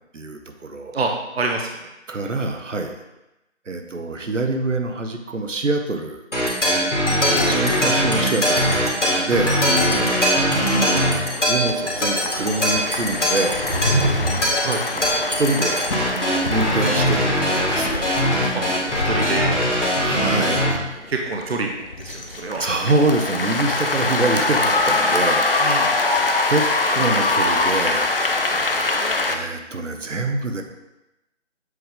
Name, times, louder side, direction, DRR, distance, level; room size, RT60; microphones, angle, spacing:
voice 1, 0.1-1.0 2.1-3.0 3.7-6.2 7.4-8.6 9.0-9.6 10.5-13.8 14.9-15.9 16.5-17.2 17.5-18.1 20.0-20.7 22.6-25.4 26.5-26.6 26.9-28.2 29.3-30.6, right 2 dB, 80° right, 4 dB, 0.9 m, -25 dB
voice 2, 0.9-1.9 7.2-7.6 14.6-14.8 18.5-19.5 21.1-22.6 25.6-25.9, right 3 dB, 55° right, 2 dB, 0.7 m, -27 dB
sound 1, 6.3-20.7, equal, 75° left, 2.1 m, -21 dB
sound 2, 10.6-29.4, left 2 dB, 50° left, 0.5 m, -24 dB
sound 3, 13.4-14.7, right 1 dB, 20° left, 0.9 m, -23 dB
7.6 x 3.7 x 3.4 m, 0.95 s
figure-of-eight pair, 165°, 37 cm